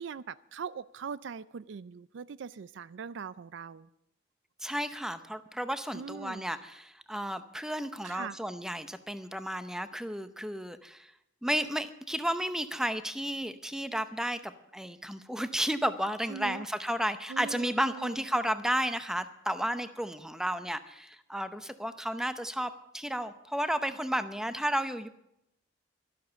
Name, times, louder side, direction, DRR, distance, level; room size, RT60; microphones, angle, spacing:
voice 1, 0.0-3.9 5.9-6.5 8.0-8.4 16.3-16.7 17.3-18.2, right 6 dB, 65° right, 18 dB, 0.4 m, -41 dB
voice 2, 4.6-11.1 11.4-25.1, equal, 5° right, 11 dB, 0.7 m, -33 dB
12.5 x 12.0 x 7.0 m, 0.82 s
head